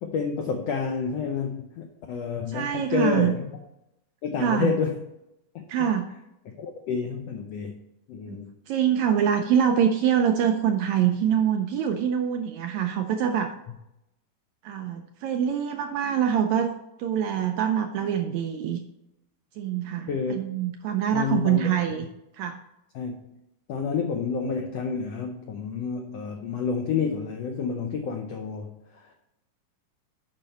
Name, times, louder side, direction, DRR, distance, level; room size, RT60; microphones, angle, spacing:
voice 1, 0.0-3.5 4.2-4.9 5.5-5.9 6.6-7.8 8.1-8.5 20.1-20.3 21.1-21.6 22.9-23.2 23.7-29.1, left 5 dB, 85° left, 3 dB, 1.4 m, -29 dB
voice 2, 2.5-3.3 4.4-4.8 5.7-6.1 8.3-8.4 8.7-13.5 14.6-18.8 19.6-22.1 22.4-22.6, right 9 dB, 85° right, 6 dB, 1.6 m, -25 dB
8.9 x 5.8 x 4.2 m, 0.88 s
omnidirectional pair, 3.9 m